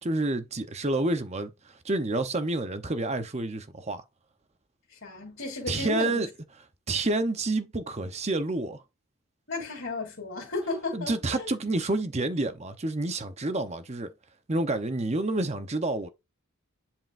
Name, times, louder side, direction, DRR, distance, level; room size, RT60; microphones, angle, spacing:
voice 1, 0.0-4.0 5.7-6.3 6.9-8.8 10.9-14.1 14.5-16.1, right 2 dB, 30° right, 0.8 m, -29 dB
voice 2, 4.9-6.3 9.5-11.5, left 3 dB, 55° left, 2.9 m, -34 dB
11.0 x 4.6 x 2.5 m
head